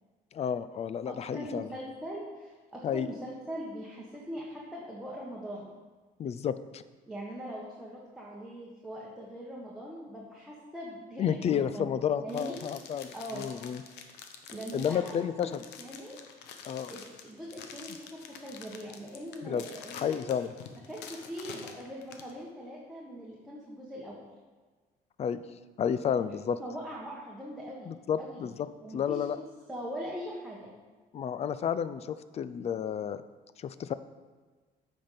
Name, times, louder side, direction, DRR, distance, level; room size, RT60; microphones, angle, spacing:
voice 1, 0.3-1.7 2.8-3.1 6.2-6.8 11.2-13.8 14.7-15.6 16.6-16.9 19.4-19.6 19.9-20.5 25.2-25.4 25.8-26.6 27.9-28.7 28.9-29.4 31.1-33.2 33.6-33.9, left 8 dB, 40° left, 14 dB, 0.4 m, -31 dB
voice 2, 1.0-5.7 7.1-11.9 12.2-12.6 13.1-13.4 14.5-15.5 15.8-16.2 16.8-20.2 20.9-24.2 26.6-27.9 28.2-29.2 29.7-30.7, equal, 5° right, -6 dB, 1.4 m, -41 dB
sound 1, 12.3-22.3, left 7 dB, 85° left, 0.9 m, -47 dB
8.6 x 5.4 x 5.7 m, 1.4 s
cardioid pair, 110°, 17 cm